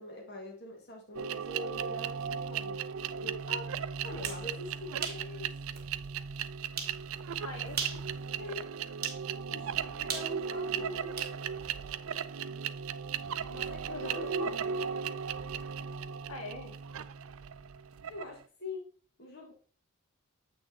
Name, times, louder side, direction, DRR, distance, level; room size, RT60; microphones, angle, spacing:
voice 1, 0.0-2.9 3.2-3.7 4.0-5.5 7.9-8.0 8.4-8.6 9.5-11.3 13.5-14.7 18.1-19.5, left 2 dB, 50° left, 0 dB, 1.6 m, -44 dB
sound 1, 1.1-18.4, right 7 dB, 70° right, 0.4 m, -36 dB
sound 2, 4.2-4.4 5.0-5.2 5.8-5.9 6.8-7.0 7.7-8.1 9.0-9.2 10.1-11.4, right 6 dB, 45° right, 1.4 m, -37 dB
voice 2, 7.4-7.8 13.9-14.5 16.3-16.7, left 2 dB, 85° left, 2 dB, 1.9 m, -41 dB
7.7 x 6.3 x 2.8 m, 0.39 s
head